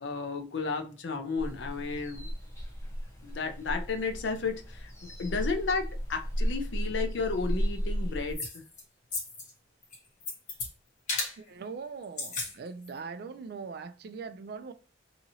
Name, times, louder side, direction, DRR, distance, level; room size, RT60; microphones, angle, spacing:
voice 1, 0.0-2.3 3.2-8.6, left 4 dB, 70° left, 0.6 m, -33 dB
sound 1, 1.4-8.4, equal, 15° left, 0.6 m, -34 dB
sound 2, 8.3-8.8 9.1-9.5 9.8-10.7 11.1-11.3 12.0-12.5 12.8-12.9, left 3 dB, 40° left, 1.0 m, -34 dB
voice 2, 11.4-14.7, right 5 dB, 55° right, 0.3 m, -41 dB
2.8 x 2.7 x 2.6 m
head